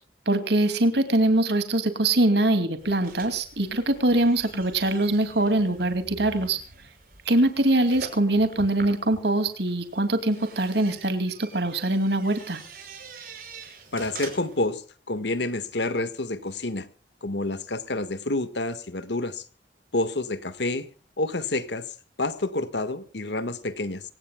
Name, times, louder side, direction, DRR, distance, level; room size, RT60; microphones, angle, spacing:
voice 1, 0.3-6.6 7.3-12.6, right 1 dB, 70° right, 9 dB, 2.5 m, -23 dB
sound 1, 2.8-14.7, right 4 dB, 50° right, 5.7 m, -45 dB
voice 2, 13.9-16.9 17.2-19.4 19.9-20.9 21.2-21.8 22.2-24.0, left 2 dB, 75° left, 12 dB, 1.6 m, -28 dB
26.0 x 17.5 x 2.3 m, 0.38 s
head